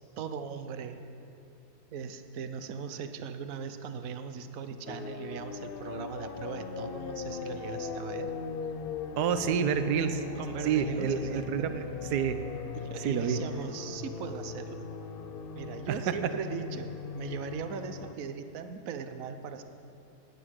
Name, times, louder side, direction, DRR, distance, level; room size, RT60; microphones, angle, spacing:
voice 1, 0.2-1.0 1.9-8.3 10.4-11.7 12.8-14.9 15.5-19.6, right 6 dB, 60° right, 9 dB, 1.2 m, -39 dB
sound 1, 4.9-18.1, left 6 dB, 70° left, 0.5 m, -39 dB
voice 2, 9.2-10.2 10.6-11.8 12.1-12.4 13.0-13.4 15.9-16.0, right 8 dB, 80° right, 10 dB, 1.3 m, -28 dB
17.5 x 9.3 x 6.4 m, 2.7 s
omnidirectional pair, 1.7 m